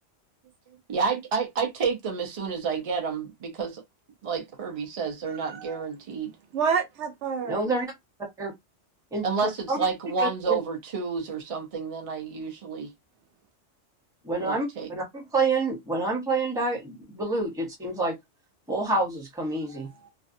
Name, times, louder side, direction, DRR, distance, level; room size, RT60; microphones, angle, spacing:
voice 1, 0.9-3.8 4.2-6.3 9.2-12.9 14.4-14.9, right 5 dB, 45° right, 0.4 m, -30 dB
voice 2, 5.3-5.9 6.5-7.6 19.8-20.1, right 6 dB, 75° right, 0.9 m, -29 dB
voice 3, 7.5-7.9 8.4-8.5 9.1-9.3 9.7-9.8 10.2-10.6 14.2-18.2 18.7-19.9, right 3 dB, 5° right, 0.6 m, -28 dB
2.5 x 2.2 x 2.5 m
omnidirectional pair, 1.2 m